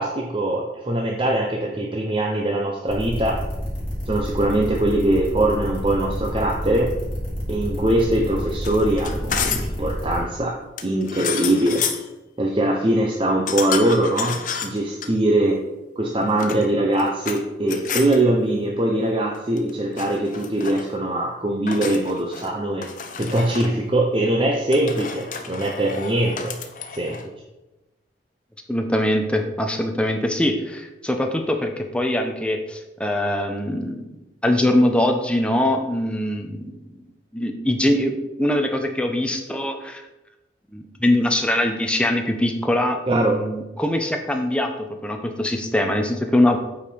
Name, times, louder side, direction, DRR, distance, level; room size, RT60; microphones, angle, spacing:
voice 1, 0.0-3.4 4.1-6.9 7.5-10.6 10.8-11.8 12.4-15.6 16.0-22.9 23.2-26.5 26.9-27.2 43.1-43.4, right 1 dB, 30° right, 0 dB, 0.8 m, -22 dB
sound 1, 2.9-10.2, equal, 30° left, 3.2 m, -29 dB
sound 2, 8.6-9.8 10.8-12.1 13.5-15.1 16.2-17.4 17.7-18.2 19.3-19.7 20.0-20.8 21.7-22.5 22.8-23.7 24.7-27.3, left 6 dB, 45° left, 0.8 m, -30 dB
voice 2, 28.7-34.0 34.4-36.7 37.3-40.0 40.7-46.6, left 1 dB, 5° left, 4 dB, 0.8 m, -22 dB
8.7 x 4.9 x 5.1 m, 1.0 s
head